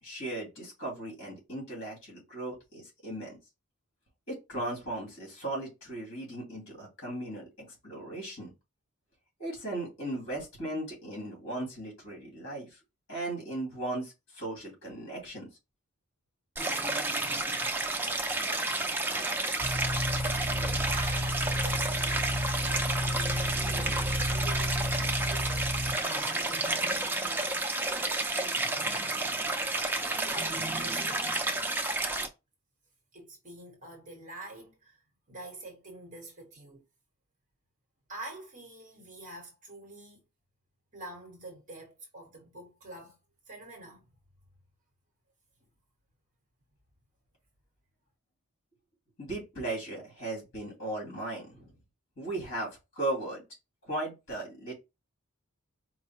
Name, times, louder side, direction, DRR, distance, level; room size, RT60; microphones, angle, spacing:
voice 1, 0.0-3.4 4.3-8.5 9.4-12.8 13.1-15.4 49.2-51.7 52.2-53.4 53.8-54.7, right 1 dB, 55° left, 2.4 m, -37 dB
Stream, 16.6-32.3, right 2 dB, 10° right, 0.4 m, -31 dB
sound 1, 19.6-25.9, left 1 dB, 30° left, 1.2 m, -32 dB
voice 2, 20.9-22.2 22.6-25.7 25.9-29.0 29.9-31.3 33.1-35.0 35.3-36.9 38.1-40.2 40.9-43.2 43.5-44.1, right 2 dB, 35° right, 1.0 m, -47 dB
4.6 x 2.1 x 4.3 m
head